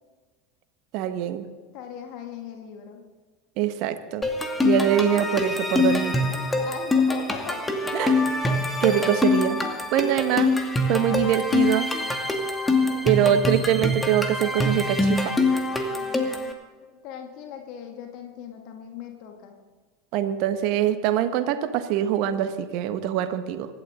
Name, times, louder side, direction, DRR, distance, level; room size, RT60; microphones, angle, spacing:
voice 1, 0.9-1.4 3.6-4.2 4.6-6.2 7.9-8.2 8.8-9.6 9.9-10.5 10.9-11.9 13.0-15.3 20.1-23.7, right 10 dB, 55° right, 9 dB, 1.5 m, -23 dB
voice 2, 1.7-3.0 6.3-7.7 10.0-10.6 12.8-13.6 15.8-16.5 16.9-19.5, left 8 dB, 55° left, 2 dB, 2.2 m, -40 dB
sound 1, 4.2-16.5, left 2 dB, 10° left, 2.4 m, -24 dB
26.0 x 12.0 x 3.8 m, 1.4 s
figure-of-eight pair, 75°, 0 cm